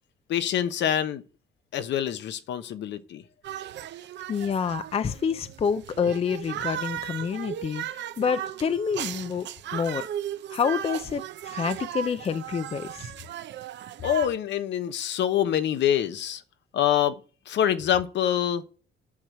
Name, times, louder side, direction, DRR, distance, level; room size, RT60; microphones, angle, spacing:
voice 1, 0.3-1.2 1.7-3.2 14.0-16.4 16.7-17.1 17.5-18.6, left 10 dB, 60° left, 1.1 m, -25 dB
sound 1, 3.4-14.3, right 11 dB, 60° right, 0.8 m, -36 dB
voice 2, 4.3-10.1 10.5-13.1, left 6 dB, 30° left, 0.6 m, -28 dB
8.6 x 6.3 x 7.4 m
cardioid pair, 150°, 21 cm